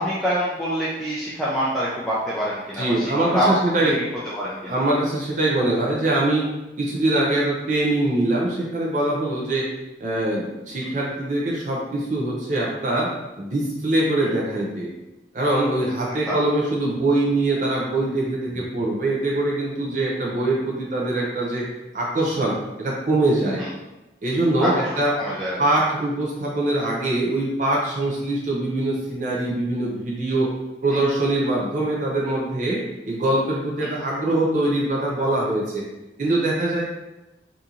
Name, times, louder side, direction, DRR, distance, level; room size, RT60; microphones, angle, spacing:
voice 1, 0.0-3.5 3.8-4.0 4.3-4.8 10.8-10.9 16.3-16.4 23.6-23.7 24.6-25.6, equal, ahead, -9 dB, 0.4 m, -26 dB
voice 2, 2.8-4.0 4.7-6.4 6.8-9.7 10.0-13.1 13.4-14.9 15.3-21.7 21.9-23.6 24.2-25.1 25.6-30.5 30.8-35.8 36.2-36.8, right 2 dB, 45° right, -4 dB, 0.6 m, -23 dB
2.8 x 2.6 x 3.6 m, 1.0 s
head